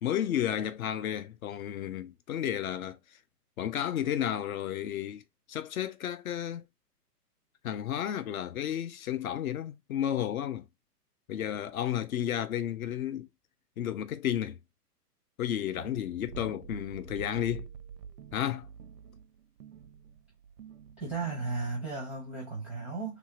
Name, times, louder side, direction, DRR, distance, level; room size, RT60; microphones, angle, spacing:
voice 1, 0.0-3.0 3.6-5.2 5.5-6.6 7.6-10.7 11.3-13.3 13.8-14.6 15.4-17.7 18.3-18.7, left 10 dB, 60° left, 0.6 m, -32 dB
sound 1, 15.8-22.0, right 7 dB, 85° right, 0.6 m, -47 dB
voice 2, 21.0-23.2, right 4 dB, 5° right, 0.5 m, -35 dB
2.9 x 2.6 x 2.9 m
hypercardioid pair, 135°, 48 cm